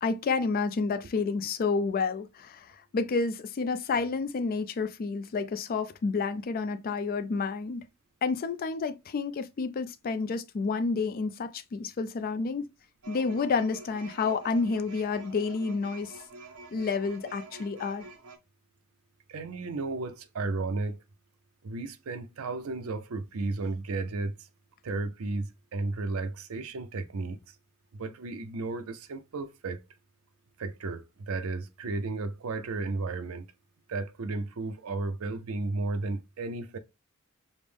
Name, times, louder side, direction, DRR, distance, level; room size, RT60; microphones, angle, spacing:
voice 1, 0.0-7.8 8.2-12.7 13.1-16.2 16.7-18.1, left 4 dB, 40° left, 0.3 m, -30 dB
sound 1, 13.0-18.4, right 4 dB, 90° right, 0.9 m, -47 dB
voice 2, 19.3-21.0 21.6-24.3 24.8-27.4 27.9-29.8 30.6-33.5 33.9-36.8, right 3 dB, 70° right, 0.5 m, -33 dB
5.1 x 2.0 x 3.3 m
head